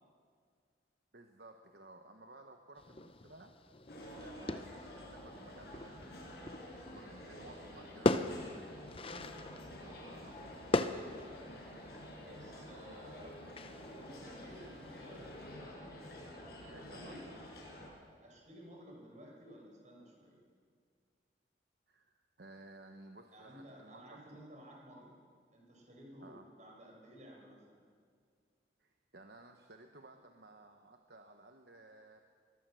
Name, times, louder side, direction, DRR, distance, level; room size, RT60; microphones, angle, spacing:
voice 1, 1.1-3.5 4.1-6.6 6.9-10.6 13.2-13.3 14.4-15.1 16.7-17.2 21.9-24.4 26.2-26.5 28.8-32.2, right 2 dB, 60° right, 4 dB, 1.1 m, -57 dB
sound 1, 2.8-15.6, left 2 dB, 30° left, 0.7 m, -40 dB
sound 2, 3.9-17.9, left 1 dB, 60° left, 5.5 m, -50 dB
voice 2, 10.8-11.5 12.2-13.4 13.8-15.4 16.9-17.3 18.2-20.4 23.3-25.2 25.5-27.8, equal, 40° right, -1 dB, 5.7 m, -54 dB
22.0 x 19.0 x 6.4 m, 2.1 s
head